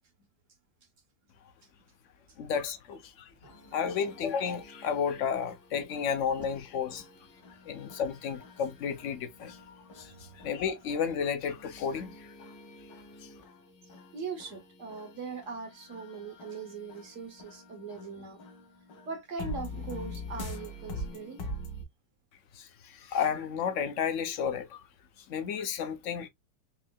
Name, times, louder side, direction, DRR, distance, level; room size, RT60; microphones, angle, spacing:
voice 1, 2.4-3.3 3.7-7.0 7.7-12.3 13.2-13.3 22.5-24.8 25.3-26.3, left 7 dB, 55° left, 1.0 m, -32 dB
voice 2, 3.3-3.7 9.9-10.4 13.8-18.4 19.1-21.4, right 4 dB, 50° right, 1.4 m, -41 dB
sound 1, 3.4-21.9, left 1 dB, 80° left, 2.0 m, -45 dB
4.6 x 3.3 x 2.2 m
omnidirectional pair, 1.9 m